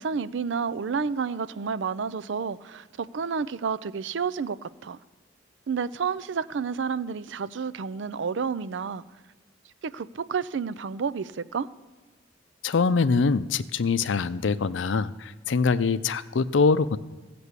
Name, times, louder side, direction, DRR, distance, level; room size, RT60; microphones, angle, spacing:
voice 1, 0.0-5.0 5.7-9.0 9.8-11.7, right 5 dB, 70° right, 0.5 m, -30 dB
voice 2, 12.6-17.0, left 4 dB, 80° left, 0.5 m, -24 dB
15.0 x 6.0 x 8.1 m
head